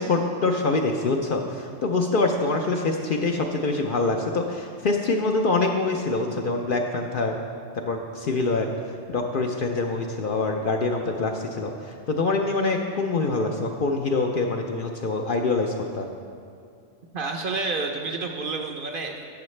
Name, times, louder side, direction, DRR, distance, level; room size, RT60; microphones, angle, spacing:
voice 1, 0.0-7.3 7.8-8.7 9.1-16.1, left 3 dB, 55° left, 3 dB, 0.6 m, -25 dB
voice 2, 17.1-19.2, right 3 dB, 55° right, 3 dB, 0.8 m, -29 dB
12.0 x 7.7 x 3.2 m, 2.3 s
omnidirectional pair, 1.3 m